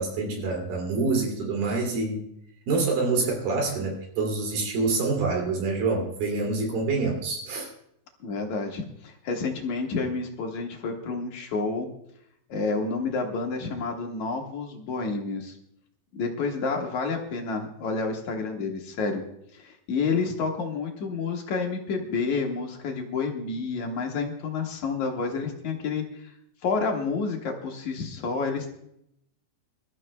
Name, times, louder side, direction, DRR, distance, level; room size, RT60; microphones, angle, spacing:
voice 1, 0.0-2.3 2.7-7.7, right 3 dB, 70° right, 1 dB, 4.3 m, -26 dB
voice 2, 8.2-11.9 12.5-15.6 16.1-19.2 19.5-26.3 26.6-28.7, left 4 dB, 60° left, 2 dB, 2.5 m, -29 dB
24.5 x 13.0 x 2.2 m, 0.76 s
omnidirectional pair, 4.3 m